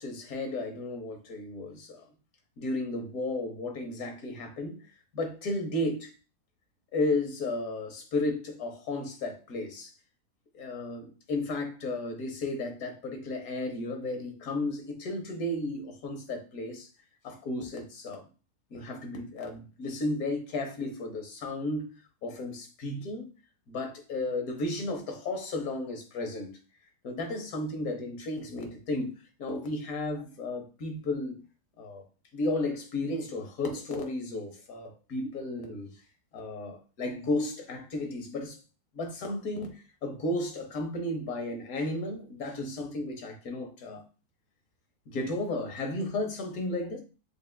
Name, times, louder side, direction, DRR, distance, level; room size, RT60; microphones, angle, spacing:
voice 1, 0.0-2.0 2.6-4.8 5.1-6.1 6.9-9.9 10.5-16.9 17.2-18.2 18.7-21.9 22.2-23.3 23.7-26.6 27.0-31.4 31.8-32.0 32.3-35.9 36.3-38.6 38.9-44.0 45.1-47.0, left 2 dB, 65° left, 1.3 m, -33 dB
6.7 x 2.4 x 2.2 m
omnidirectional pair, 1.7 m